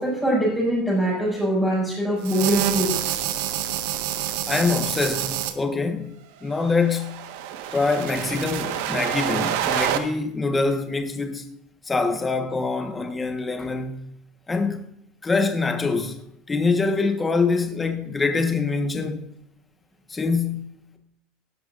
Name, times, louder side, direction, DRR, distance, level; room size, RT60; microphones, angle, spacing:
voice 1, 0.0-2.9, equal, 5° right, 5.8 m, -23 dB
sound 1, 2.2-5.5 6.6-10.0, right 11 dB, 75° right, 1.4 m, -27 dB
voice 2, 4.5-6.1 6.4-7.3 7.7-11.5 11.9-14.0 14.5-14.8 15.2-16.2 16.5-19.2 20.1-20.6, left 4 dB, 10° left, 1.3 m, -24 dB
18.0 x 12.0 x 2.6 m
cardioid pair, 165°, 0 cm